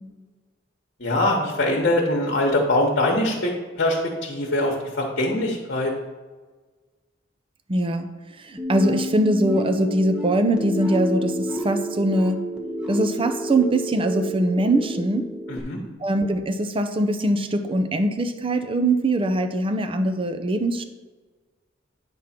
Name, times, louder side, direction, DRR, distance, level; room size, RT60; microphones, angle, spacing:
voice 1, 1.0-5.9 15.5-15.8, left 1 dB, 60° left, -1 dB, 1.2 m, -23 dB
voice 2, 7.7-8.1 8.4-12.4 12.9-15.3 16.0-20.8, right 1 dB, 30° right, 7 dB, 0.5 m, -22 dB
sound 1, 8.6-15.6, equal, 5° right, 0.9 m, -30 dB
9.0 x 3.7 x 5.9 m, 1.3 s
head